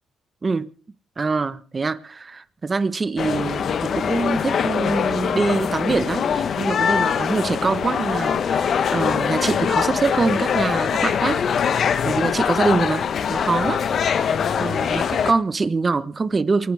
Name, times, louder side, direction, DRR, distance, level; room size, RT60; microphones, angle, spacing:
voice 1, 1.2-13.8 14.1-14.3 14.6-16.7, right 4 dB, 30° right, 1.0 m, -24 dB
sound 1, 3.2-15.3, left 7 dB, 60° left, 1.1 m, -23 dB
28.0 x 11.5 x 3.5 m
cardioid pair, 90°, 0 cm